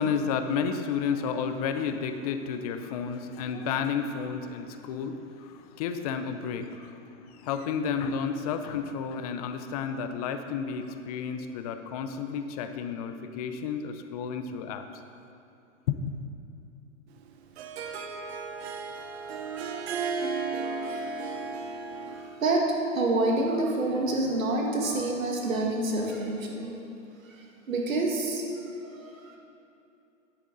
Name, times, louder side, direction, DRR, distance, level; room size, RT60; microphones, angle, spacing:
voice 1, 0.0-14.9 15.9-16.2, left 6 dB, 30° left, 8 dB, 0.5 m, -31 dB
Harp, 17.2-22.5, right 4 dB, 55° right, 0.9 m, -34 dB
voice 2, 19.2-20.0 20.6-21.4 22.0-22.6 22.9-26.8 27.3-28.4 28.7-29.4, right 2 dB, 90° right, 0 dB, 1.9 m, -29 dB
10.5 x 7.8 x 3.9 m, 2.8 s
hypercardioid pair, 135°, 39 cm